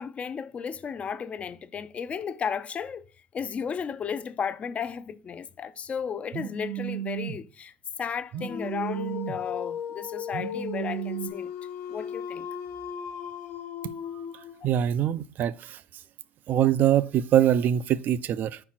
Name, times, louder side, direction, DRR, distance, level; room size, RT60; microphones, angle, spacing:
voice 1, 0.0-3.0 3.3-11.5 11.9-12.5, left 7 dB, 35° left, 0.5 m, -34 dB
Telephone, 6.3-7.4 8.3-9.4 10.3-11.3, right 10 dB, 75° right, 1.3 m, -34 dB
Dog, 8.4-14.7, left 8 dB, 60° left, 0.8 m, -37 dB
voice 2, 14.6-15.8 16.5-18.6, right 11 dB, 50° right, 0.4 m, -23 dB
4.9 x 4.5 x 5.8 m
supercardioid pair, 95°, 4 cm